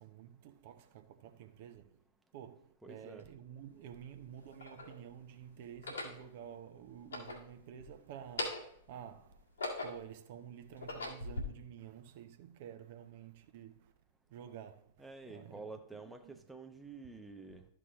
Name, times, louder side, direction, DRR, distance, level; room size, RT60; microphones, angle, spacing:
voice 1, 0.0-2.0 2.3-9.4 9.8-13.9 14.3-16.4, right 9 dB, 50° right, 0.7 m, -51 dB
voice 2, 2.8-3.2 15.0-17.7, right 3 dB, 5° right, 0.8 m, -49 dB
sound 1, 3.2-3.3 4.1-5.0 5.7-6.2 6.9-7.9 8.2-8.8 9.3-10.2 10.7-11.4, left 2 dB, 75° left, 1.8 m, -41 dB
12.5 x 6.0 x 3.0 m
figure-of-eight pair, 100°, 0 cm